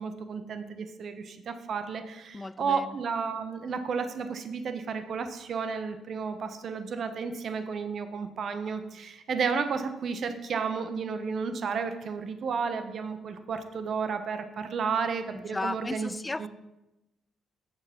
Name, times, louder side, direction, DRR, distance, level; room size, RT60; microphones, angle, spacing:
voice 1, 0.0-16.5, right 5 dB, 55° right, 0.9 m, -32 dB
voice 2, 2.3-3.0 15.3-16.5, left 2 dB, 20° left, 0.3 m, -35 dB
7.4 x 6.6 x 5.8 m
cardioid pair, 90°, 0 cm